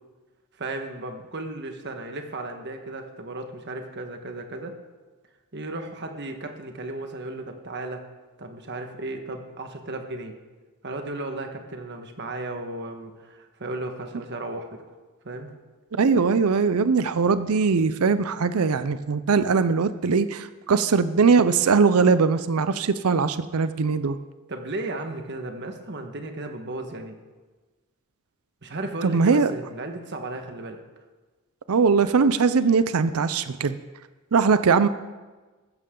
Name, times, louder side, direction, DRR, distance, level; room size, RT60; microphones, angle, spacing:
voice 1, 0.6-4.8 5.5-8.0 8.4-10.3 10.8-15.0 15.2-15.5 24.5-27.2 28.6-30.8, right 2 dB, 50° right, 5 dB, 1.4 m, -35 dB
voice 2, 16.0-24.2 29.0-29.5 31.7-33.8 34.3-34.9, right 5 dB, 75° right, 13 dB, 0.5 m, -21 dB
15.0 x 13.5 x 3.8 m, 1.3 s
head